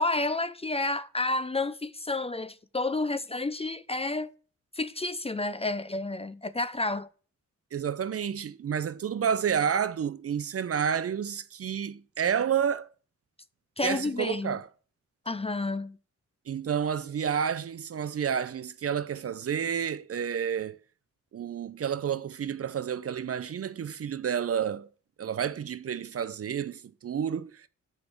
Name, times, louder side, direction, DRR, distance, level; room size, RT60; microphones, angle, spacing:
voice 1, 0.0-4.3 4.7-7.1 13.8-14.6 15.3-16.0, left 2 dB, 20° left, 0.5 m, -30 dB
voice 2, 7.7-12.9 13.8-14.7 16.5-20.8 21.3-24.9 25.2-27.7, right 8 dB, 50° right, 0.5 m, -30 dB
5.9 x 5.3 x 6.9 m
cardioid pair, 60°, 31 cm